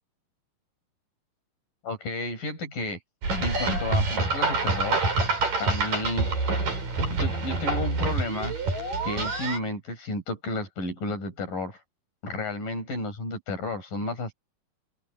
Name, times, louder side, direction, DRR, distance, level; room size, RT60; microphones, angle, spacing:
voice 1, 1.8-3.0 3.4-5.1 5.6-8.6 9.0-11.8 12.2-14.3, left 2 dB, 85° left, 9.0 m, -32 dB
sound 1, 3.2-9.6, right 3 dB, 90° right, 8.8 m, -26 dB
open air
omnidirectional pair, 3.8 m